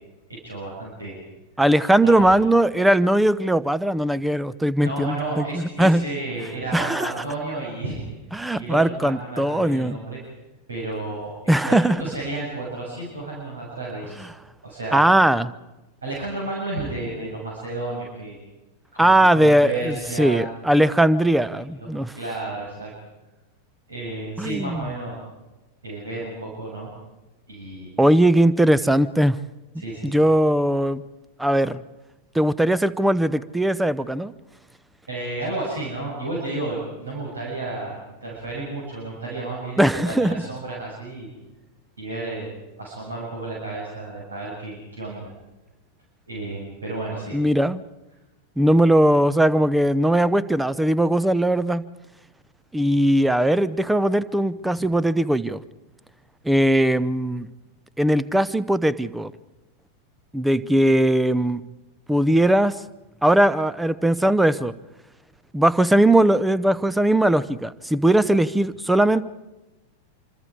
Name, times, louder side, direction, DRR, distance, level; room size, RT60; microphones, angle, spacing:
voice 1, 0.3-1.2 2.0-2.2 4.8-8.0 8.5-10.2 10.7-14.1 14.6-15.1 16.0-18.3 18.9-20.4 21.6-22.9 23.9-25.2 25.8-26.9 27.5-28.0 29.8-30.2 35.1-37.9 38.2-41.3 42.0-42.5 42.8-45.3 46.3-47.4, right 2 dB, 75° right, -4 dB, 6.5 m, -32 dB
voice 2, 1.6-6.0 6.7-7.1 8.3-10.0 11.5-12.0 14.9-15.5 19.0-22.1 24.4-24.9 28.0-29.4 30.0-31.0 31.4-31.8 32.3-34.3 39.8-40.5 47.3-47.8 48.6-51.8 52.7-55.6 56.4-57.5 58.0-59.3 60.3-61.6 62.1-62.8 63.2-64.7 65.5-69.2, right 1 dB, 5° right, 18 dB, 0.7 m, -19 dB
26.0 x 25.5 x 4.9 m, 1.1 s
figure-of-eight pair, 90°, 0 cm